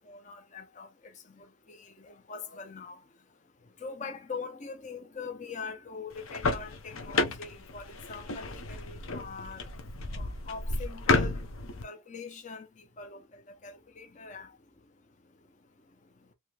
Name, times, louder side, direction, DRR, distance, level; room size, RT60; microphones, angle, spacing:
voice 1, 0.1-3.0 3.8-9.6 10.1-11.5 11.8-14.5, left 5 dB, 35° left, 0.6 m, -43 dB
sound 1, 6.1-11.8, left 3 dB, 75° left, 0.7 m, -32 dB
3.2 x 2.8 x 2.3 m
head